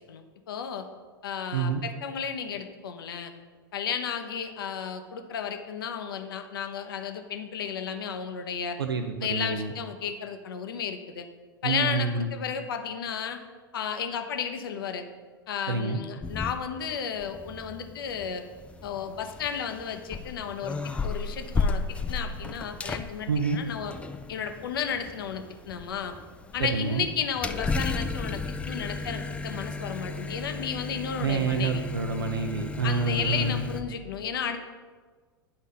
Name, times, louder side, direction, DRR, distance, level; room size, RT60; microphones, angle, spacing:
voice 1, 0.1-0.9 1.2-3.3 3.7-8.8 9.2-11.3 11.6-13.4 13.7-15.0 15.5-18.4 18.8-20.8 21.0-21.8 22.1-23.9 24.3-26.1 26.5-31.8 32.8-34.6, left 7 dB, 70° left, 7 dB, 0.7 m, -33 dB
voice 2, 8.8-9.7 11.6-12.3 15.7-16.0 23.3-23.6 26.7-27.1 31.2-33.7, right 4 dB, 85° right, 5 dB, 0.5 m, -28 dB
sound 1, 16.2-16.9 17.2-33.8, left 3 dB, 10° left, 0.3 m, -34 dB
9.7 x 4.0 x 3.8 m, 1.4 s
figure-of-eight pair, 90°, 12 cm